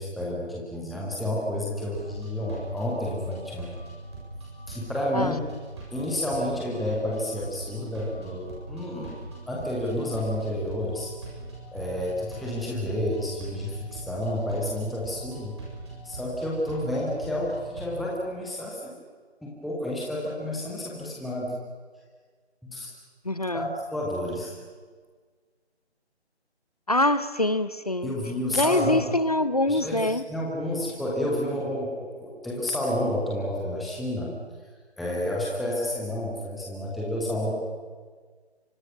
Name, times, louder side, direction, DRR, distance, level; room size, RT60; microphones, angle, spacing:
voice 1, 0.0-3.7 4.7-5.4 5.9-9.2 9.5-11.1 11.7-15.5 16.0-18.9 19.4-21.6 22.6-22.9 23.5-24.5 28.0-29.0 29.7-34.3 35.0-37.5, left 1 dB, ahead, -4 dB, 0.7 m, -30 dB
sound 1, 1.7-18.0, right 2 dB, 25° right, 7.4 m, -41 dB
voice 2, 23.2-23.7 26.9-28.1 28.5-30.2, left 1 dB, 35° left, 13 dB, 0.8 m, -24 dB
28.5 x 24.5 x 5.9 m, 1.5 s
figure-of-eight pair, 170°, 33 cm